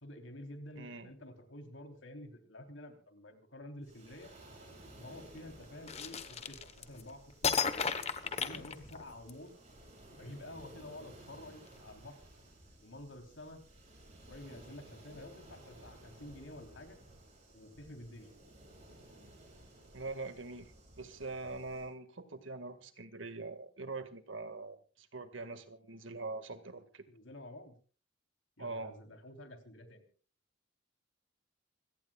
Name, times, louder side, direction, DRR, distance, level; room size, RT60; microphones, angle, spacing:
voice 1, 0.0-4.3 5.0-7.8 8.2-9.5 10.1-12.2 12.8-13.6 14.3-17.0 17.5-18.3 27.1-27.7 28.6-30.0, left 1 dB, 85° left, 5 dB, 3.7 m, -50 dB
voice 2, 0.8-1.1 19.9-27.1 28.6-28.9, right 3 dB, 85° right, 10 dB, 2.0 m, -43 dB
Waves surf, 3.8-21.9, right 1 dB, 35° right, 7.9 m, -56 dB
sound 1, 5.9-7.0 7.4-9.3, left 6 dB, 35° left, 1.2 m, -34 dB
26.5 x 17.5 x 2.4 m, 0.37 s
head